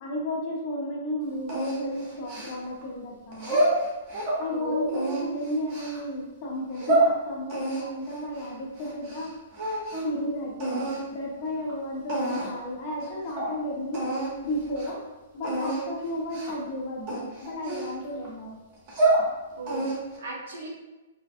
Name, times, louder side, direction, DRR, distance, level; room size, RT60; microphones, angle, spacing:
voice 1, 0.0-3.6 4.4-9.3 10.0-14.1 14.4-15.0 15.3-18.6, left 1 dB, 30° left, -1 dB, 0.4 m, -33 dB
sound 1, 1.5-2.8 3.3-4.4 4.9-6.0 6.5-7.1 7.5-9.3 9.5-10.2 10.6-11.0 11.7-11.8 12.1-12.6 13.0-13.1 13.4-13.5 13.9-14.3 14.7-14.9 15.4-15.8 16.3-16.6 17.1-18.3 18.7-19.2 19.7-20.2, right 2 dB, 30° right, 0.7 m, -27 dB
voice 2, 4.5-5.0 19.5-20.7, right 1 dB, 85° right, -2 dB, 0.8 m, -35 dB
2.4 x 2.4 x 2.4 m, 1.1 s
hypercardioid pair, 180°, 0 cm